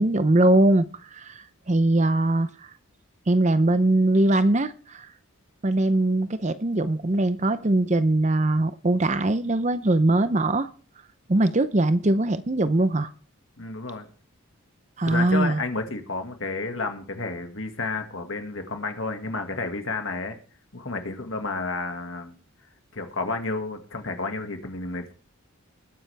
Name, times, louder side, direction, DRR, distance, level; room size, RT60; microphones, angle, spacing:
voice 1, 0.0-2.5 3.3-5.1 5.6-10.7 11.3-13.1 15.0-15.6, right 2 dB, 30° right, 0.6 m, -21 dB
voice 2, 13.6-14.1 15.0-20.4 20.7-22.4 22.9-25.1, left 3 dB, 60° left, 2.0 m, -31 dB
19.5 x 9.9 x 3.4 m
head